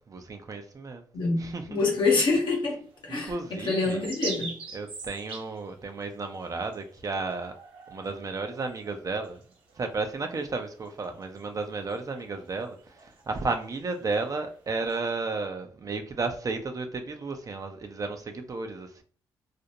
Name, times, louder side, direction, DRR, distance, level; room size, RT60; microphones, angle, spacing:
voice 1, 0.0-1.0 1.4-1.8 3.1-4.1 4.7-7.5 7.9-9.4 9.8-19.0, right 3 dB, 40° right, 0.6 m, -33 dB
voice 2, 1.1-4.6, left 3 dB, 60° left, 1.0 m, -26 dB
sound 1, 2.8-15.0, right 4 dB, 70° right, 0.8 m, -44 dB
2.5 x 2.1 x 2.8 m
supercardioid pair, 55°, 9 cm